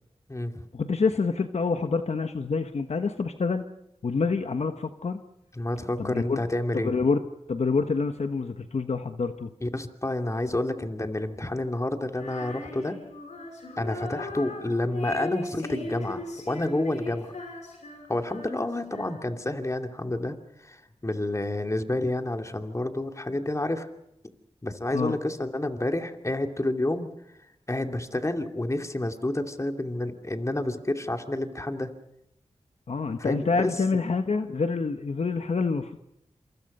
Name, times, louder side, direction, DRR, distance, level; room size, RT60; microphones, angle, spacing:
voice 1, 0.7-3.6 4.0-5.2 6.0-6.4 6.7-7.2 7.5-9.5 24.9-25.2 32.9-36.0, left 4 dB, 65° left, 7 dB, 1.2 m, -27 dB
voice 2, 5.6-6.9 9.6-13.0 13.8-17.3 18.1-20.4 20.6-23.9 24.6-27.1 27.7-31.9 33.2-33.7, left 1 dB, 25° left, 5 dB, 2.7 m, -29 dB
Female singing, 12.1-19.5, left 2 dB, 85° left, 6.0 m, -38 dB
27.5 x 24.5 x 5.5 m, 0.82 s
cardioid pair, 50°, 12 cm